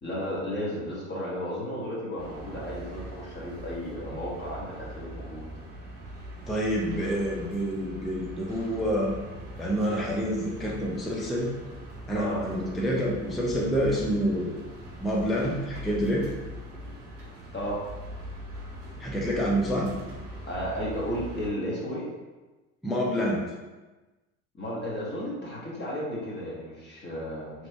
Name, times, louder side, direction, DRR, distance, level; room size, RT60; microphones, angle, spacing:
voice 1, 0.0-5.5 12.1-12.4 17.5-17.8 20.5-22.1 24.6-27.7, equal, 25° left, -6 dB, 1.0 m, -33 dB
sound 1, 2.2-21.5, equal, 30° right, 1.0 m, -42 dB
voice 2, 6.5-9.2 9.6-11.5 12.1-14.6 15.0-16.2 19.0-19.9 22.8-23.4, equal, ahead, -3 dB, 0.4 m, -27 dB
3.1 x 2.5 x 3.3 m, 1.2 s
hypercardioid pair, 70°, 44 cm